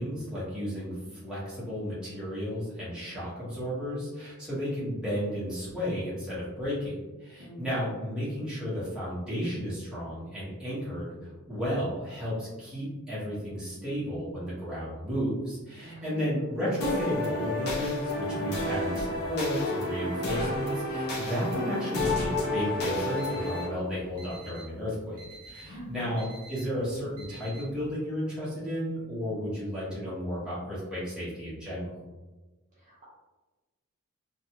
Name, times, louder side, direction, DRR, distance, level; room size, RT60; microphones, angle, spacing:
voice 1, 0.0-31.9, equal, 5° right, -10 dB, 1.1 m, -33 dB
voice 2, 15.8-16.2 25.6-26.1, equal, 35° right, -8 dB, 0.7 m, -44 dB
sound 1, 16.8-23.7, left 1 dB, 45° left, 0.6 m, -30 dB
Alarm, 22.9-27.9, right 3 dB, 75° right, 0.5 m, -50 dB
2.5 x 2.3 x 2.8 m, 1.2 s
head